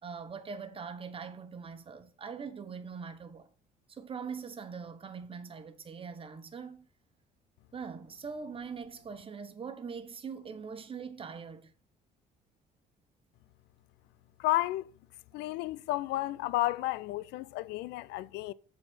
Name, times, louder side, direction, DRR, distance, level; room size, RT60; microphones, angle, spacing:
voice 1, 0.0-3.5 3.9-6.9 7.7-11.7, right 5 dB, 30° right, 1.2 m, -42 dB
voice 2, 14.4-14.9 15.3-18.5, left 17 dB, 90° left, 0.4 m, -32 dB
7.6 x 4.2 x 6.2 m
cardioid pair, 110°, 17 cm